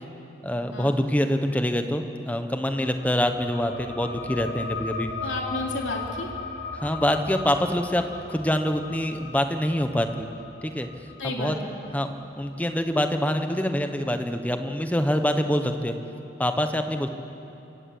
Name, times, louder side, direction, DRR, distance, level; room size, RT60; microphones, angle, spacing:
voice 1, 0.4-5.1 6.7-10.3 10.6-10.9 11.2-11.5 11.9-12.1 12.4-15.9 16.4-17.1, equal, 10° left, 6 dB, 1.0 m, -25 dB
sound 1, 2.7-13.8, left 3 dB, 55° left, 2.1 m, -38 dB
voice 2, 5.2-6.3 11.2-11.8, left 2 dB, 75° left, 0 dB, 3.0 m, -32 dB
27.0 x 17.0 x 7.9 m, 2.9 s
head